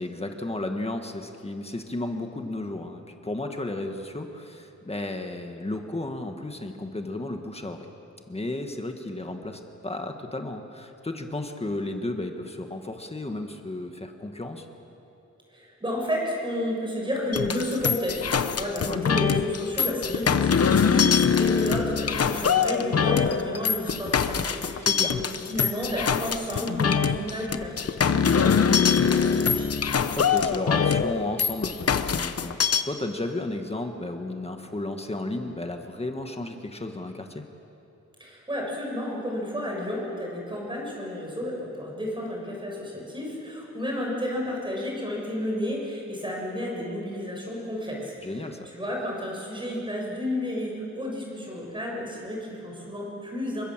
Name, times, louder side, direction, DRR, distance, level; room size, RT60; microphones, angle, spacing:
voice 1, 0.0-7.9 8.3-14.6 18.8-19.0 24.8-25.2 30.1-32.6 32.8-37.5 48.2-48.7, left 2 dB, 20° left, 4 dB, 1.7 m, -33 dB
voice 2, 15.5-25.2 25.5-29.7 38.2-48.4 48.6-53.6, left 1 dB, 15° right, -2 dB, 6.8 m, -31 dB
sound 1, 17.3-32.8, left 6 dB, 55° left, 0.9 m, -23 dB
28.0 x 23.5 x 7.6 m, 2.9 s
wide cardioid pair, 155°, 29 cm